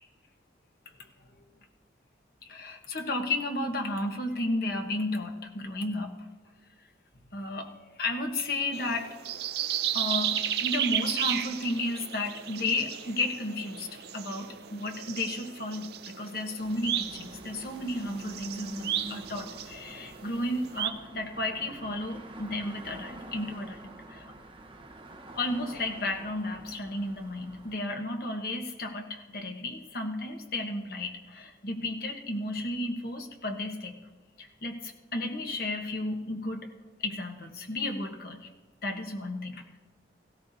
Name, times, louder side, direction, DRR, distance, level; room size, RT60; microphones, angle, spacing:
voice 1, 2.5-6.1 7.3-7.7 8.0-9.1 9.9-13.9 14.1-24.2 25.3-33.9 34.4-36.7 37.0-38.4 38.8-39.8, left 2 dB, 55° left, 3 dB, 1.3 m, -33 dB
sound 1, 8.7-20.9, right 10 dB, 60° right, 0.5 m, -34 dB
sound 2, 16.6-27.8, right 1 dB, 25° right, 1.1 m, -46 dB
17.5 x 16.0 x 2.8 m, 1.2 s
head